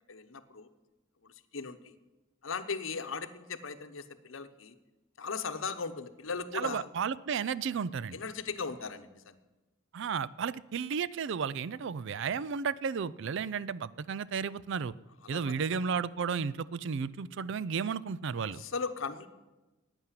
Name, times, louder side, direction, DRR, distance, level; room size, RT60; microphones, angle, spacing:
voice 1, 0.1-0.7 1.2-1.9 2.4-4.8 5.2-6.9 8.1-9.4 15.2-15.8 18.5-19.3, left 5 dB, 70° left, 10 dB, 0.9 m, -38 dB
voice 2, 6.5-8.2 9.9-14.9 15.3-18.6, right 6 dB, 60° right, 18 dB, 0.4 m, -33 dB
11.5 x 9.0 x 9.7 m, 1.1 s
head